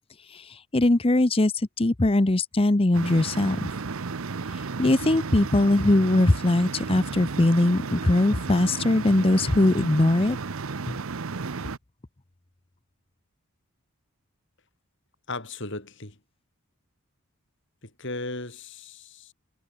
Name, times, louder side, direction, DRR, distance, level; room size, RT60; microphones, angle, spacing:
voice 1, 0.3-3.7 4.8-10.4 10.9-11.0, left 2 dB, 25° left, 0.7 m, -21 dB
sound 1, 2.9-11.8, right 4 dB, 70° right, 0.8 m, -33 dB
voice 2, 15.3-16.2 17.8-19.3, left 2 dB, 55° left, 4.8 m, -36 dB
head